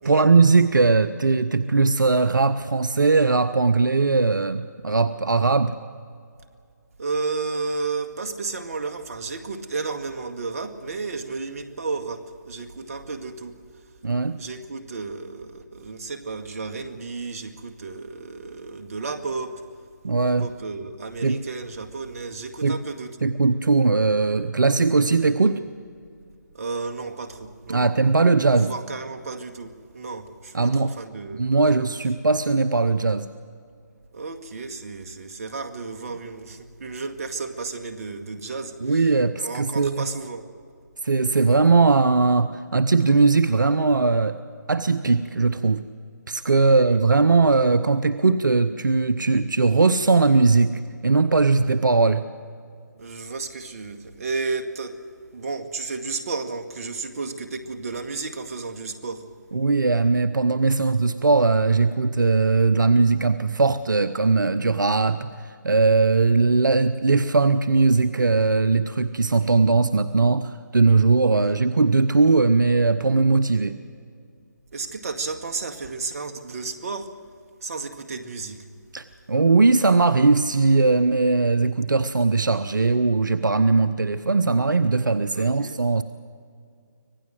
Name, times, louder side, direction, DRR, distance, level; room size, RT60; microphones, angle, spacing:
voice 1, 0.0-5.7 14.0-14.4 20.0-20.5 21.2-21.4 22.6-22.8 23.2-25.6 27.7-28.7 30.5-30.9 31.3-33.3 38.8-40.1 41.0-44.4 44.7-45.8 46.3-52.2 59.5-73.8 78.9-86.0, right 3 dB, 80° right, 12 dB, 0.9 m, -19 dB
voice 2, 7.0-13.6 14.4-19.6 20.4-23.3 25.2-25.7 26.5-27.9 28.6-31.8 34.1-39.1 39.4-40.5 46.6-47.0 53.0-55.0 55.3-59.3 71.3-71.6 74.7-77.1 77.6-78.7 85.3-85.8, right 4 dB, 50° right, 5 dB, 2.0 m, -33 dB
25.5 x 17.5 x 7.8 m, 2.3 s
figure-of-eight pair, 150°, 10 cm